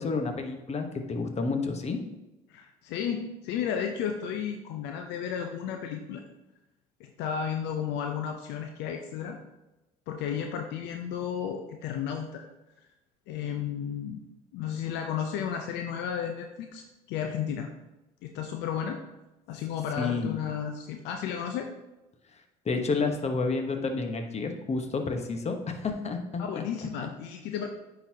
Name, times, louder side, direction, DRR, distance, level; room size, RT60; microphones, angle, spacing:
voice 1, 0.0-2.0 20.0-20.4 22.6-26.6, left 4 dB, 35° left, 5 dB, 1.1 m, -30 dB
voice 2, 2.5-6.2 7.0-9.4 10.1-12.4 13.3-14.2 14.5-17.7 18.2-19.0 19.5-21.7 26.4-27.7, left 8 dB, 70° left, 4 dB, 0.6 m, -33 dB
9.8 x 4.0 x 2.8 m, 1.0 s
hypercardioid pair, 65°, 19 cm